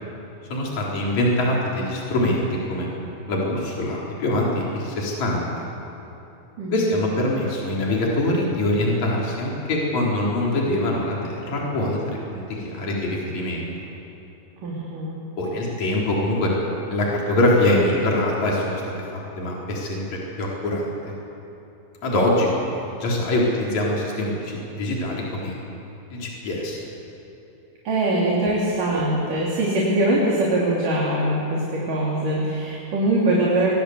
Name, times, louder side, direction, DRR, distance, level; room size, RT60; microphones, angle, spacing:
voice 1, 0.5-2.9 3.3-5.5 6.7-13.7 15.4-16.5 16.9-18.8 19.1-20.0 20.4-20.9 22.0-22.5 23.0-25.6 26.1-26.8, left 1 dB, 45° left, -3 dB, 5.3 m, -23 dB
voice 2, 14.6-15.2 27.8-33.7, right 1 dB, 60° right, -4 dB, 4.7 m, -22 dB
26.0 x 22.0 x 8.1 m, 3.0 s
omnidirectional pair, 4.5 m